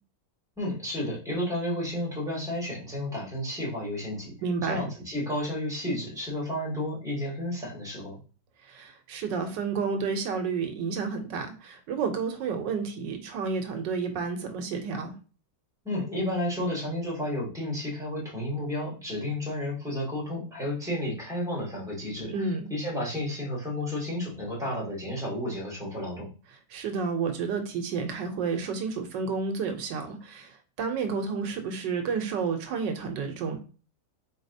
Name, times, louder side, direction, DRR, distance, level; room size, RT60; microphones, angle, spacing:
voice 1, 0.6-4.3 4.6-8.2 15.8-26.3, left 1 dB, ahead, -5 dB, 2.1 m, -32 dB
voice 2, 4.4-4.9 8.6-15.1 22.3-22.7 26.7-33.6, right 5 dB, 80° right, 6 dB, 1.4 m, -31 dB
4.8 x 4.0 x 2.7 m, 0.36 s
omnidirectional pair, 1.9 m